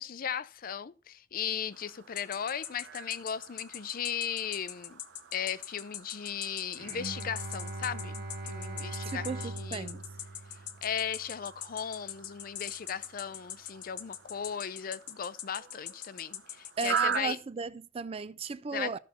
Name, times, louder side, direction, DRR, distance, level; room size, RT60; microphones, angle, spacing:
voice 1, 0.0-5.0 5.3-9.3 9.6-10.0 10.8-17.4 18.7-19.0, left 8 dB, 50° left, 0.5 m, -36 dB
sound 1, 1.7-17.2, right 7 dB, 80° right, 0.7 m, -42 dB
sound 2, 2.2-17.2, left 11 dB, 65° left, 0.9 m, -41 dB
Bowed string instrument, 6.8-12.0, right 2 dB, 55° right, 1.4 m, -41 dB
voice 2, 9.0-10.0 16.8-19.0, right 5 dB, 30° right, 0.4 m, -36 dB
14.5 x 5.7 x 4.2 m
head